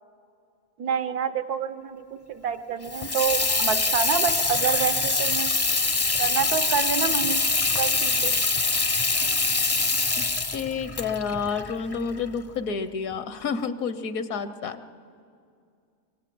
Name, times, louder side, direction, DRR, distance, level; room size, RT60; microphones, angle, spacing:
voice 1, 0.8-5.5 6.2-7.5 7.8-8.3, right 7 dB, 85° right, 11 dB, 1.5 m, -28 dB
Water tap faucet / Sink (filling or washing), 2.8-12.4, left 3 dB, 30° left, 0.4 m, -24 dB
voice 2, 10.5-14.8, left 5 dB, 70° left, 12 dB, 1.2 m, -29 dB
24.5 x 24.0 x 7.6 m, 2.4 s
omnidirectional pair, 1.6 m